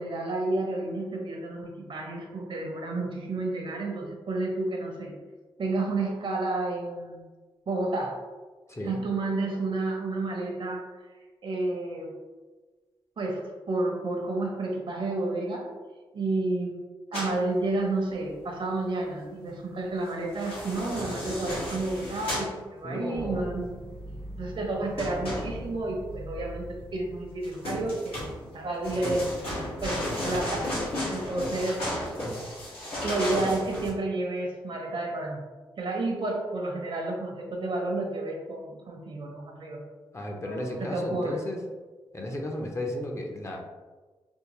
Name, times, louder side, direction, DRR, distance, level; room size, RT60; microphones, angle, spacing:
voice 1, 0.0-5.1 5.6-7.2 7.7-8.2 8.8-10.8 11.4-12.1 13.2-15.7 16.1-16.8 17.1-23.8 24.4-26.7 26.9-28.3 28.5-29.3 29.8-30.8 31.1-32.1 33.0-35.4 35.8-39.8 40.4-41.4, right 2 dB, 60° right, 1 dB, 0.8 m, -30 dB
voice 2, 8.7-9.0 22.8-23.5 40.1-41.6 42.1-43.6, left 1 dB, 30° left, 1 dB, 0.7 m, -34 dB
sound 1, 17.1-17.4 20.2-22.5 25.0-25.9 27.4-33.9, left 1 dB, 80° left, 1.5 m, -33 dB
sound 2, 23.1-27.7, equal, 55° left, 1.3 m, -41 dB
3.6 x 2.5 x 3.0 m, 1.3 s
cardioid pair, 55°, 10 cm